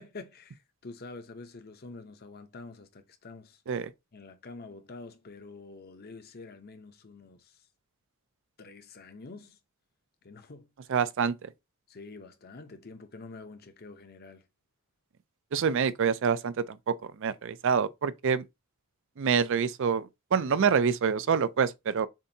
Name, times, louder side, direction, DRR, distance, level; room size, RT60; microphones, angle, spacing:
voice 1, 0.0-3.6 4.1-7.7 8.6-9.6 10.2-10.9 11.9-14.4, left 3 dB, 45° left, 0.8 m, -47 dB
voice 2, 10.9-11.5 15.5-18.4 19.2-22.1, right 6 dB, 60° right, 0.4 m, -27 dB
7.2 x 2.7 x 2.7 m
head